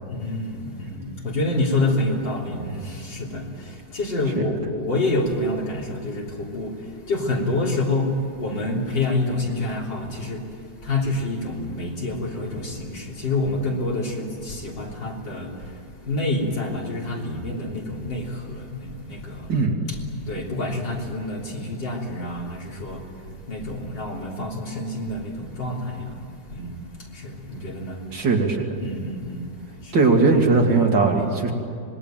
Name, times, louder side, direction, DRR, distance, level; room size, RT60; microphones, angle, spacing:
voice 1, 0.0-19.6 19.9-20.0 20.3-28.1 28.8-29.5 29.8-30.0 30.5-30.6, left 2 dB, 75° left, -2 dB, 4.2 m, -28 dB
voice 2, 28.1-28.7 29.9-31.5, right 3 dB, 80° right, 1 dB, 3.4 m, -19 dB
26.0 x 20.0 x 9.1 m, 2.2 s
omnidirectional pair, 2.0 m